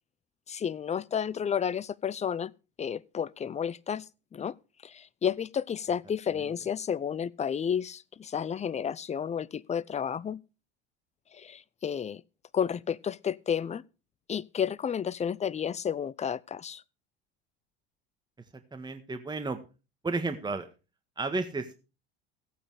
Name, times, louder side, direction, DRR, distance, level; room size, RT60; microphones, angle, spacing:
voice 1, 0.5-2.5 2.8-4.0 4.3-4.5 4.8-10.4 11.3-12.2 12.5-13.8 14.3-16.8, left 8 dB, 20° left, 0.6 m, -31 dB
voice 2, 18.7-19.6 20.0-20.7 21.2-21.8, right 3 dB, 15° right, 1.6 m, -32 dB
15.0 x 8.7 x 4.8 m
hypercardioid pair, 80°, 31 cm